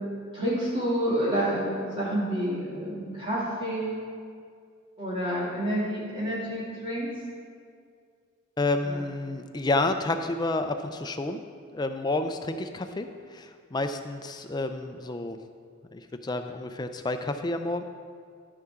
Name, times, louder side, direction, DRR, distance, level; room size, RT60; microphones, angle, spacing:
voice 1, 0.3-4.0 5.0-7.1 8.8-9.0, equal, 25° right, -7 dB, 2.4 m, -29 dB
voice 2, 8.6-11.4 11.7-15.4 15.9-17.8, left 2 dB, 20° left, 7 dB, 0.4 m, -30 dB
13.5 x 5.7 x 3.6 m, 2.2 s
head